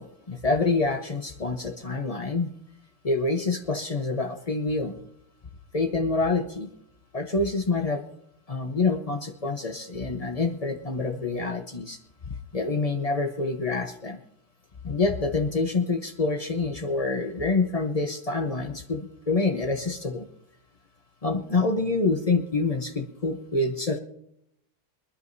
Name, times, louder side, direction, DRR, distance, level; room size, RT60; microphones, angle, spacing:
voice 1, 0.0-2.5 3.0-5.0 5.7-6.7 7.1-8.0 8.5-12.0 12.3-14.2 14.8-20.3 21.2-24.0, left 3 dB, 50° left, 4 dB, 0.4 m, -27 dB
24.5 x 11.5 x 2.7 m, 0.75 s
omnidirectional pair, 2.3 m